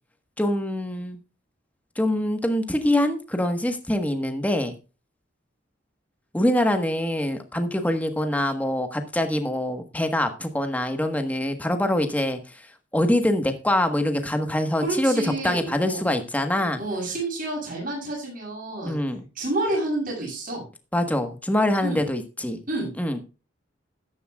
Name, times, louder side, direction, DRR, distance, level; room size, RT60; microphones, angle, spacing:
voice 1, 0.4-1.2 2.0-4.7 6.3-12.4 12.9-16.8 18.9-19.3 20.9-22.6 23.0-23.2, left 1 dB, 10° left, 6 dB, 1.3 m, -24 dB
voice 2, 14.8-16.0 16.8-19.0 19.4-20.6 21.8-22.0 22.7-22.9, right 2 dB, 45° right, -3 dB, 7.4 m, -29 dB
14.0 x 11.0 x 2.4 m, 0.32 s
head